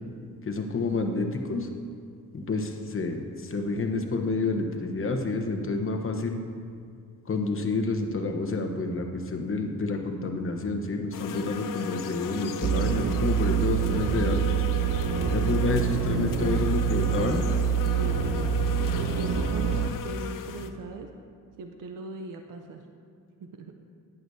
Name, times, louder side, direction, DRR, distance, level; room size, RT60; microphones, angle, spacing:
voice 1, 0.4-1.7 2.3-6.4 7.3-14.6 15.3-17.5, left 3 dB, 40° left, 3 dB, 1.0 m, -29 dB
sound 1, 11.1-20.7, left 8 dB, 70° left, 0.6 m, -37 dB
sound 2, 12.6-19.9, right 7 dB, 35° right, 0.4 m, -26 dB
voice 2, 17.5-18.2 18.8-21.1 21.6-22.9 23.4-23.7, right 3 dB, 70° right, 4 dB, 0.7 m, -39 dB
11.0 x 9.6 x 2.7 m, 2.2 s
cardioid pair, 95°, 34 cm